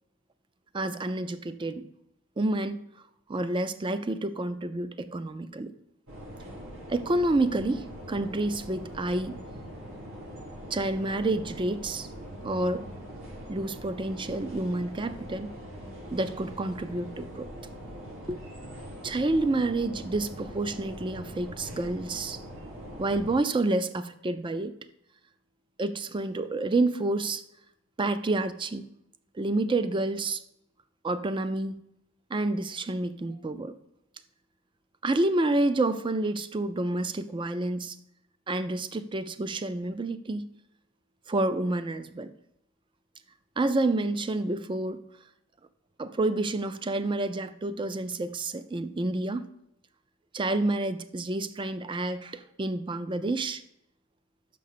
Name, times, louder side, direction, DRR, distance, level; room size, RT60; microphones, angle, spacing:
voice 1, 0.7-1.9 2.4-2.8 3.3-5.7 6.9-9.3 10.7-12.1 12.4-12.8 13.5-15.5 16.1-17.5 18.3-18.4 19.0-22.4 23.0-24.7 25.8-27.4 28.0-28.9 29.3-30.4 31.0-31.8 32.3-33.7 35.0-38.0 38.5-40.5 41.3-42.3 43.6-45.0 46.0-49.5 50.3-53.6, right 2 dB, 25° right, 12 dB, 0.4 m, -29 dB
sound 1, 6.1-23.4, equal, 85° right, 2.1 m, -42 dB
6.4 x 5.3 x 6.7 m, 0.80 s
head